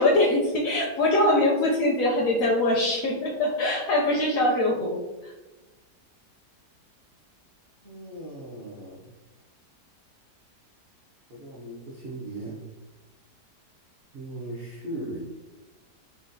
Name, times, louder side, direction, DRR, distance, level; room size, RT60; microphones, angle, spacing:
voice 1, 0.0-5.0, left 1 dB, 70° left, -1 dB, 0.8 m, -23 dB
voice 2, 7.8-9.1 11.3-12.6 14.1-15.2, right 1 dB, 75° right, -4 dB, 0.5 m, -38 dB
3.9 x 2.2 x 2.5 m, 1.1 s
omnidirectional pair, 1.8 m